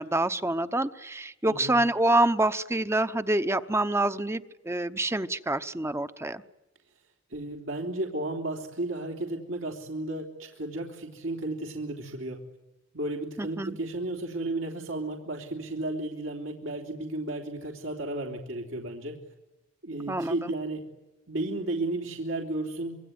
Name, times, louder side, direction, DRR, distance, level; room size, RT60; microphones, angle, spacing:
voice 1, 0.0-6.4 13.4-13.8 20.1-20.5, right 2 dB, 15° right, 12 dB, 0.9 m, -27 dB
voice 2, 7.3-12.4 12.9-19.2 19.8-20.8 21.3-23.0, right 2 dB, 80° right, 1 dB, 3.4 m, -33 dB
26.5 x 23.0 x 9.5 m, 0.97 s
head